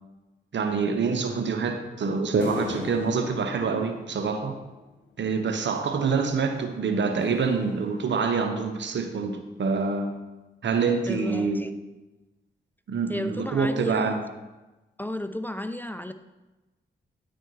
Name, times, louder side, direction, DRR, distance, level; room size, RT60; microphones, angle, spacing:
voice 1, 0.5-4.6 5.2-10.1 10.6-11.6 12.9-14.2, right 5 dB, 65° right, 6 dB, 1.0 m, -26 dB
Big Sheet deep clack clack, 2.4-5.1 6.5-8.6, left 3 dB, 65° left, 1.3 m, -41 dB
voice 2, 11.1-11.7 13.1-14.2 15.0-16.1, left 1 dB, 10° left, 10 dB, 0.5 m, -33 dB
10.0 x 4.4 x 4.7 m, 1.1 s
supercardioid pair, 40°, 20 cm